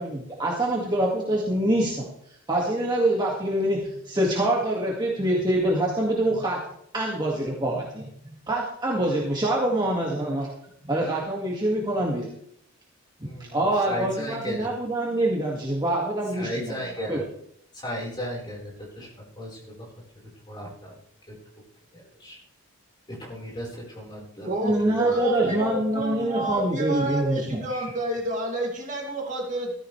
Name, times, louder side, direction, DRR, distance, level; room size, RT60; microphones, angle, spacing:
voice 1, 0.0-2.1 2.5-3.8 4.0-6.6 6.9-8.0 8.5-10.5 10.8-12.3 13.4-16.7 17.1-17.2 24.6-27.6, right 1 dB, 20° right, -3 dB, 2.0 m, -25 dB
voice 2, 13.2-13.6 13.9-14.7 16.4-17.2 17.7-19.9 20.5-20.9 21.3-21.4 21.9-22.4 23.1-24.5 24.9-25.1 25.4-25.6 27.7-27.9, equal, 20° left, -3 dB, 4.5 m, -35 dB
voice 3, 24.4-29.7, right 2 dB, 35° right, -1 dB, 2.5 m, -29 dB
15.0 x 13.5 x 3.3 m, 0.71 s
head